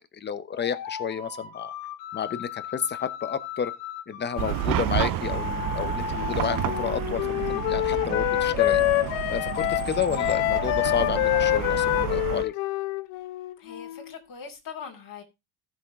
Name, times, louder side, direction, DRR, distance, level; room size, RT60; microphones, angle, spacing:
voice 1, 0.1-1.7 2.1-3.7 4.1-8.8 9.3-12.5, left 7 dB, 20° left, 0.9 m, -31 dB
sound 1, 0.5-6.9 7.5-12.0, left 9 dB, 65° left, 1.9 m, -36 dB
Chatter / Car passing by / Traffic noise roadway noise, 4.4-12.4, right 12 dB, 45° right, 0.7 m, -31 dB
Wind instrument woodwind instrument, 6.2-14.2, left 16 dB, 85° left, 1.3 m, -26 dB
voice 2, 13.6-15.2, left 6 dB, 40° left, 2.7 m, -41 dB
14.5 x 6.2 x 3.7 m
cardioid pair, 130°, 50 cm